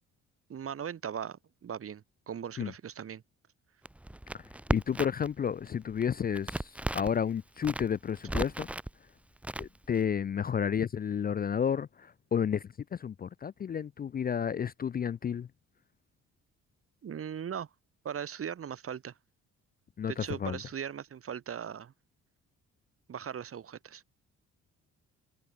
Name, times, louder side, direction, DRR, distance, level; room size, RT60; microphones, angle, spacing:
voice 1, 0.5-3.2 17.0-17.7 18.1-19.1 20.1-21.9 23.1-24.0, right 8 dB, 50° right, 1.7 m, -39 dB
Crackle, 3.9-5.3 5.6-7.2 7.6-8.9 9.4-10.0, right 1 dB, 5° right, 0.7 m, -35 dB
voice 2, 4.7-8.7 9.6-12.6 12.9-15.5 20.0-20.6, left 8 dB, 30° left, 0.4 m, -31 dB
cardioid pair, 90°, 30 cm